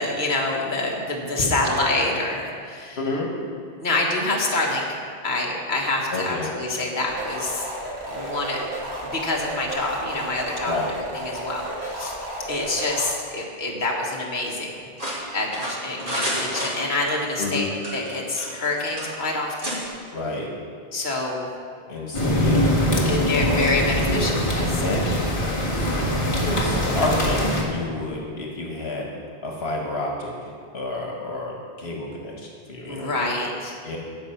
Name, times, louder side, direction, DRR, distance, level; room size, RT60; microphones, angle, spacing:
voice 1, 0.0-3.0 3.8-7.6 8.1-8.6 9.0-12.2 12.5-14.8 15.3-19.8 20.9-21.5 23.1-24.8 25.7-26.2 32.8-33.8, left 2 dB, 50° left, -2 dB, 1.6 m, -27 dB
voice 2, 3.0-3.3 6.1-6.5 10.7-10.9 17.4-17.7 20.1-20.5 21.9-23.7 24.0-25.4 26.4-29.1 29.4-33.2 33.8-34.0, left 2 dB, 80° left, 0 dB, 1.6 m, -29 dB
sound 1, 7.1-13.1, right 1 dB, 85° right, 2.2 m, -33 dB
sound 2, 15.0-17.2 17.8-18.7 19.0-19.1 19.6-19.8, equal, 55° right, 2.9 m, -29 dB
sound 3, 22.1-27.6, equal, 30° left, 1.7 m, -23 dB
15.5 x 5.4 x 5.7 m, 2.1 s
omnidirectional pair, 1.0 m